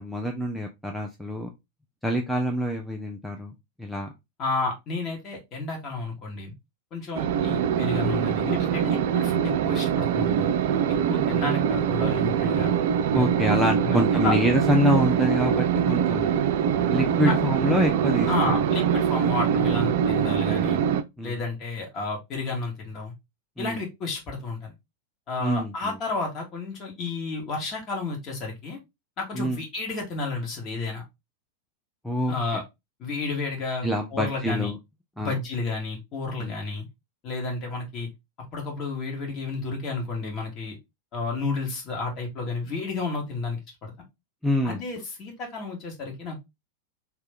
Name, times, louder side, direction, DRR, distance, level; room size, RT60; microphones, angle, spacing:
voice 1, 0.0-1.5 2.0-3.5 3.8-4.1 13.1-16.4 16.9-18.5 21.2-21.4 23.6-23.8 25.4-25.7 29.4-29.6 32.0-32.3 33.8-34.8 35.2-35.4 36.4-36.5 44.4-44.8, equal, ahead, 0.5 m, -26 dB
voice 2, 4.4-6.5 6.9-10.5 10.9-12.7 13.1-14.4 17.3-17.4 18.3-20.8 21.2-23.1 23.6-24.7 25.3-28.8 29.2-31.0 32.3-32.6 33.0-34.7 35.2-36.8 37.2-38.1 38.5-40.8 41.1-43.9 44.6-46.4, left 3 dB, 35° left, 1.6 m, -31 dB
sound 1, 7.1-21.0, right 8 dB, 50° right, 0.4 m, -23 dB
3.2 x 2.9 x 3.5 m
figure-of-eight pair, 90°, 0 cm